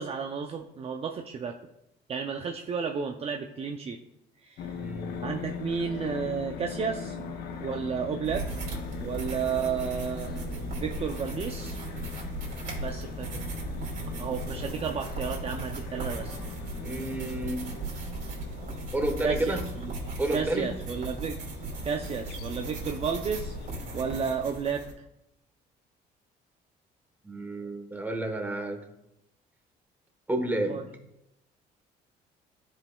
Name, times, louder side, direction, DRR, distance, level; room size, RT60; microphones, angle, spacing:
voice 1, 0.0-1.5 2.1-4.0 4.4-4.7 5.2-7.2 7.6-8.5 9.0-10.3 10.8-11.8 12.8-13.5 14.2-16.4 19.2-19.6 19.8-19.9 20.3-21.4 21.8-23.5 23.9-24.9 30.7-30.8, right 6 dB, 35° right, 4 dB, 0.5 m, -32 dB
sound 1, 4.6-24.3, left 6 dB, 70° left, 0.8 m, -41 dB
voice 2, 4.7-5.2 16.8-17.7 18.9-19.6 20.2-20.7 27.2-28.8 30.3-30.8, right 1 dB, 10° right, 4 dB, 1.1 m, -30 dB
sound 2, 8.2-24.9, right 2 dB, 55° right, 2.6 m, -37 dB
12.5 x 5.1 x 2.3 m, 0.85 s
cardioid pair, 110°, 17 cm